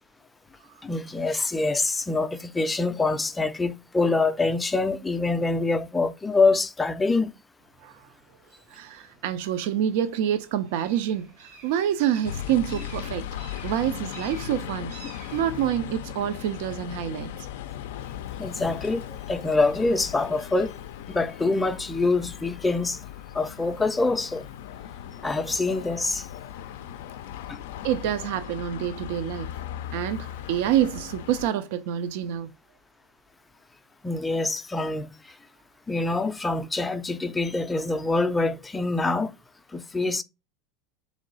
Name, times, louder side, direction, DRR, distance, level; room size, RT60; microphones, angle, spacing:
voice 1, 0.8-7.3 18.4-20.7 21.1-23.0 23.3-24.5 25.2-26.3 27.5-27.6 34.0-35.1 35.9-39.3 39.7-40.2, left 3 dB, 10° left, 0.4 m, -25 dB
sound 1, 7.6-21.4, right 4 dB, 90° right, 1.5 m, -53 dB
voice 2, 8.7-13.2 13.6-14.9 15.3-17.5 27.8-29.5 29.9-32.5, right 10 dB, 70° right, 0.4 m, -27 dB
sound 2, 12.2-31.5, left 11 dB, 90° left, 0.3 m, -38 dB
3.7 x 3.1 x 3.9 m
supercardioid pair, 145°, 0 cm